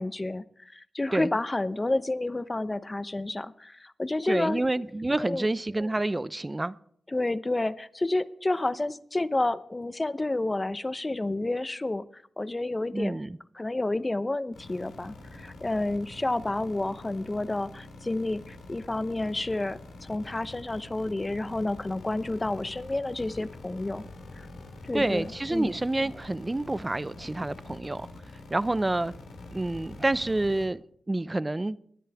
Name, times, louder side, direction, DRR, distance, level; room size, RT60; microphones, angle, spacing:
voice 1, 0.0-4.6 5.2-5.5 7.1-13.2 13.5-24.0 24.3-24.5 24.8-25.7, left 2 dB, 30° left, 0.8 m, -30 dB
voice 2, 4.2-6.8 12.9-13.4 24.9-28.1 28.5-29.1 29.5-31.8, right 2 dB, 25° right, 0.6 m, -28 dB
sound 1, 14.5-30.6, left 3 dB, 90° left, 3.2 m, -45 dB
21.0 x 10.0 x 3.5 m
supercardioid pair, 40°, 0 cm